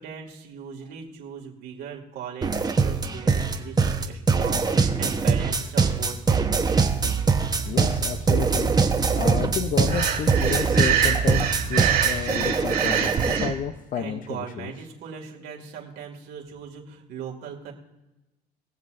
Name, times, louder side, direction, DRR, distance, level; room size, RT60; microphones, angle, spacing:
voice 1, 0.0-6.5 13.9-17.7, right 7 dB, 80° right, -1 dB, 2.3 m, -39 dB
sound 1, 2.4-13.5, right 5 dB, 25° right, 1.0 m, -23 dB
voice 2, 7.7-8.7 9.1-14.7, left 8 dB, 55° left, 8 dB, 0.6 m, -31 dB
Breathing, 9.9-13.5, right 8 dB, 65° right, 2.3 m, -25 dB
21.5 x 7.5 x 2.6 m, 1.1 s
cardioid pair, 110°, 17 cm